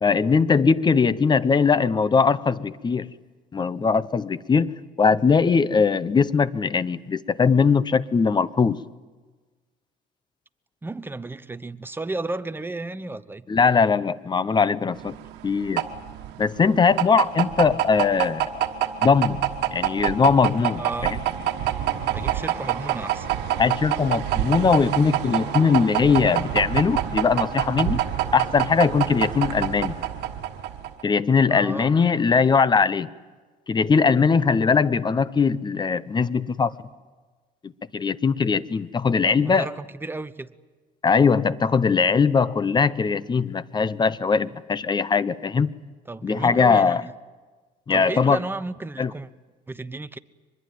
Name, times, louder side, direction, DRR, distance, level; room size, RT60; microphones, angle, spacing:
voice 1, 0.0-3.1 3.5-8.8 13.5-15.2 15.4-15.8 16.4-18.6 19.0-19.4 19.7-21.2 23.6-28.0 28.3-29.9 31.0-33.1 33.7-36.7 37.6-39.7 41.0-45.7 46.2-47.0 47.9-48.4 49.0-49.1, left 5 dB, 25° left, 0.8 m, -20 dB
voice 2, 10.8-13.5 20.8-21.1 22.1-23.3 31.5-31.9 39.2-40.5 46.1-47.1 47.9-49.3 49.7-50.2, right 2 dB, 10° right, 0.9 m, -33 dB
sound 1, 15.0-31.0, right 11 dB, 85° right, 1.4 m, -26 dB
24.5 x 21.0 x 9.2 m
cardioid pair, 110°, 17 cm